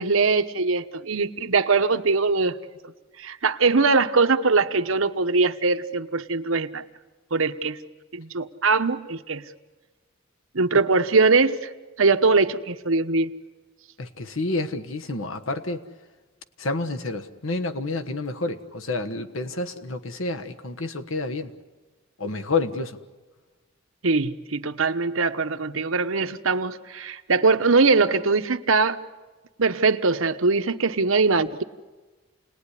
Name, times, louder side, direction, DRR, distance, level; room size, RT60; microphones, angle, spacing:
voice 1, 0.0-2.6 3.2-6.8 7.3-7.8 8.1-9.4 10.5-11.6 12.0-13.3 24.0-29.0 29.6-31.6, right 4 dB, 85° right, 8 dB, 1.1 m, -21 dB
voice 2, 14.0-15.8 16.6-21.5 22.2-23.0, left 3 dB, 85° left, 7 dB, 1.4 m, -29 dB
29.5 x 20.0 x 10.0 m, 1.3 s
head